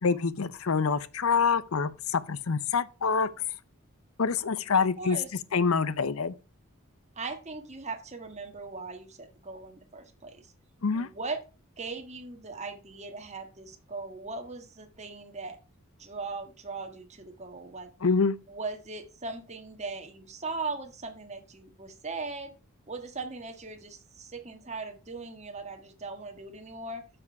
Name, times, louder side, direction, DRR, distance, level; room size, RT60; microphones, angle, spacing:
voice 1, 0.0-3.3 4.2-5.2 5.5-6.3 10.8-11.1 18.0-18.4, left 5 dB, 75° left, 0.6 m, -26 dB
voice 2, 4.7-5.3 7.1-10.5 10.9-11.4 11.8-15.6 16.0-17.9 18.5-22.5 22.9-27.0, right 3 dB, 30° right, 1.6 m, -39 dB
9.6 x 6.2 x 4.7 m
head